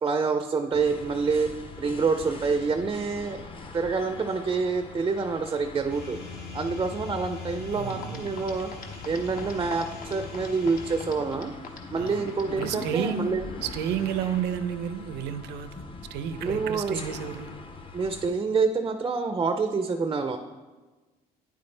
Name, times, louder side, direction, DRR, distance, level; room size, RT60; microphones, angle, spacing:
voice 1, 0.0-1.5 1.8-3.4 3.7-6.2 6.5-8.7 9.1-11.5 11.9-13.4 16.4-17.0 17.9-20.4, right 4 dB, 25° right, 8 dB, 0.5 m, -27 dB
sound 1, 0.7-18.3, left 4 dB, 30° left, 0.8 m, -42 dB
sound 2, 5.9-11.1, left 4 dB, 75° left, 2.1 m, -41 dB
voice 2, 7.7-8.3 12.0-12.2 12.6-13.3 13.6-15.8 16.1-17.6, right 8 dB, 80° right, 11 dB, 0.6 m, -31 dB
sound 3, 7.9-12.9, left 5 dB, 55° left, 1.1 m, -43 dB
9.2 x 8.5 x 3.3 m, 1.3 s
cardioid pair, 110°, 17 cm